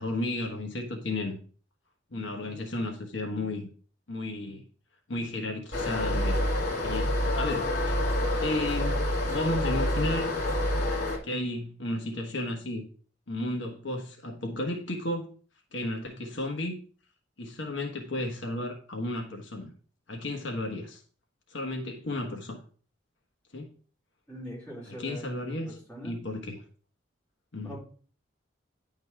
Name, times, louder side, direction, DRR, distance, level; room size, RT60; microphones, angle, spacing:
voice 1, 0.0-1.4 2.1-3.7 4.1-4.6 5.1-6.4 6.8-8.0 8.4-9.0 9.3-10.4 11.2-12.9 13.3-15.3 15.7-16.7 17.4-19.7 20.1-21.0 21.5-22.6 23.5-23.7 24.9-25.8 26.0-26.6 27.5-27.8, left 1 dB, 75° left, 1.2 m, -33 dB
sound 1, 5.7-11.2, left 1 dB, 50° left, 2.4 m, -27 dB
voice 2, 24.3-26.2 27.6-27.8, equal, 10° left, 4.6 m, -42 dB
10.0 x 4.0 x 4.6 m
head